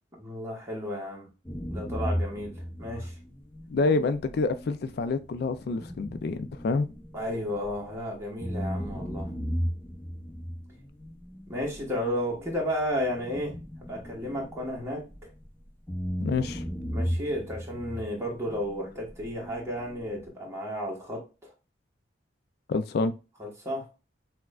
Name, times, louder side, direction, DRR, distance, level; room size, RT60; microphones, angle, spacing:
voice 1, 0.2-1.3 1.7-2.5 2.8-3.2 7.1-9.3 11.5-13.6 13.9-15.3 16.9-21.5 23.4-23.9, equal, 15° right, 1.3 m, -33 dB
sound 1, 1.4-8.0 8.4-15.5 15.9-20.3, equal, 10° left, 0.7 m, -36 dB
voice 2, 3.7-6.9 16.2-16.6 22.7-23.1, left 3 dB, 60° left, 0.3 m, -27 dB
5.9 x 2.2 x 2.3 m
head